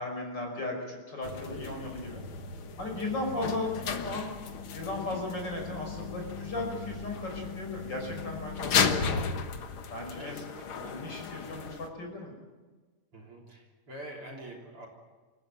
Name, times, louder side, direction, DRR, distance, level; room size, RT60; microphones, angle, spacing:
voice 1, 0.0-2.2 2.8-4.3 4.7-9.3 9.9-10.4 10.9-12.3, left 2 dB, 30° left, 2 dB, 6.2 m, -36 dB
sound 1, 1.2-11.9, left 6 dB, 55° left, 1.7 m, -34 dB
voice 2, 10.2-11.0 13.1-14.9, right 1 dB, 45° right, 1 dB, 4.3 m, -46 dB
28.5 x 16.0 x 9.1 m, 1.3 s
omnidirectional pair, 3.7 m